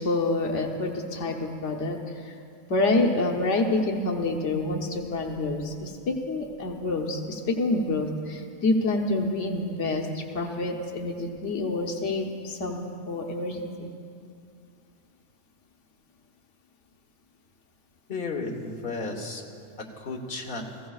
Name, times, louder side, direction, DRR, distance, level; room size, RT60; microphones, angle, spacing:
voice 1, 0.0-2.0 2.7-13.9, left 2 dB, 90° left, 2 dB, 1.3 m, -27 dB
voice 2, 18.1-19.4 19.8-20.7, left 3 dB, 50° left, 1 dB, 1.4 m, -33 dB
21.5 x 15.0 x 2.4 m, 2.4 s
omnidirectional pair, 1.2 m